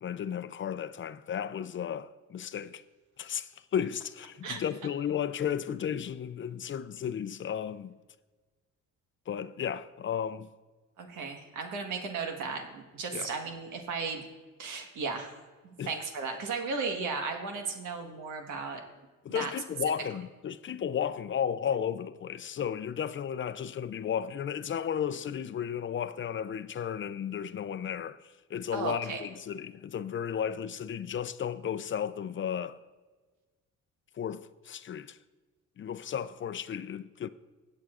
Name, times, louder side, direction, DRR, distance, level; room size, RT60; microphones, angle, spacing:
voice 1, 0.0-2.8 3.2-7.9 9.3-10.5 13.1-13.3 15.8-15.9 19.2-28.2 28.5-32.8 34.2-35.2 35.8-37.3, left 8 dB, 40° left, 0.5 m, -34 dB
voice 2, 11.0-14.2 14.6-15.4 15.6-18.8 19.3-19.5 28.7-29.3, right 4 dB, 85° right, 1.5 m, -35 dB
16.5 x 8.4 x 2.5 m
cardioid pair, 90°, 30 cm